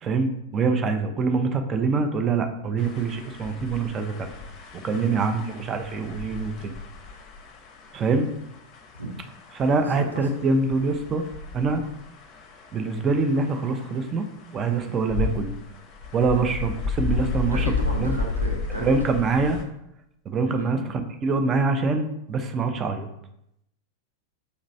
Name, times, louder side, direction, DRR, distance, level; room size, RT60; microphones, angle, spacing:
voice 1, 0.0-4.3 4.7-6.7 7.9-8.3 9.5-11.2 11.5-11.8 12.7-14.3 14.5-15.5 16.1-17.7 18.0-18.1 18.8-19.6 20.3-23.1, right 4 dB, 25° right, 6 dB, 0.5 m, -24 dB
sound 1, 2.8-19.6, left 4 dB, 35° left, 0.6 m, -33 dB
voice 2, 17.5-18.9 20.5-20.8, right 2 dB, 90° right, -2 dB, 0.9 m, -33 dB
5.3 x 3.0 x 2.7 m, 0.78 s
figure-of-eight pair, 90°, 0 cm